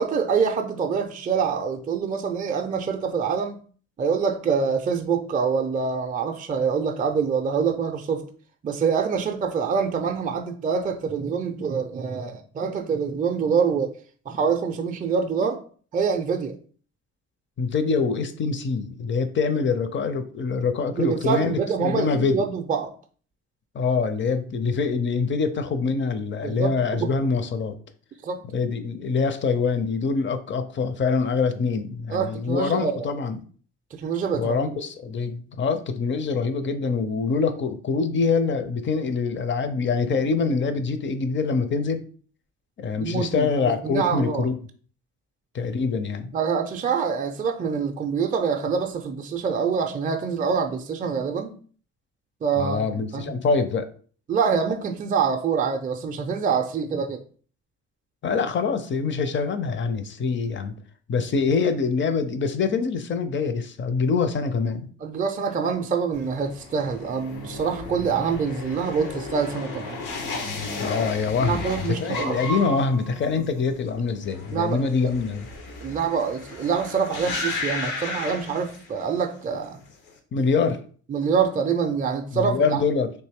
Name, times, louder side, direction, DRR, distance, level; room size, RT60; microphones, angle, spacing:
voice 1, 0.0-3.6 4.0-8.2 8.6-13.9 14.3-15.6 15.9-16.6 20.9-22.9 26.4-27.1 28.2-28.4 32.1-33.1 33.9-34.7 40.1-40.2 43.0-43.5 43.8-44.5 46.3-51.6 52.4-52.8 53.1-53.4 54.3-57.2 65.0-70.0 71.4-72.4 74.5-75.1 75.8-79.8 81.1-82.8, right 6 dB, 30° right, 0.4 m, -25 dB
voice 2, 17.6-21.5 21.8-22.4 23.7-27.8 28.5-33.4 34.3-42.0 42.8-44.6 45.5-46.3 52.6-53.9 58.2-60.7 61.1-64.9 70.8-75.5 80.3-80.8 82.3-83.1, left 4 dB, 40° left, 0.5 m, -25 dB
sound 1, 66.1-79.2 79.5-80.1, left 3 dB, 85° left, 0.8 m, -34 dB
3.2 x 2.6 x 3.4 m
cardioid pair, 90°, 30 cm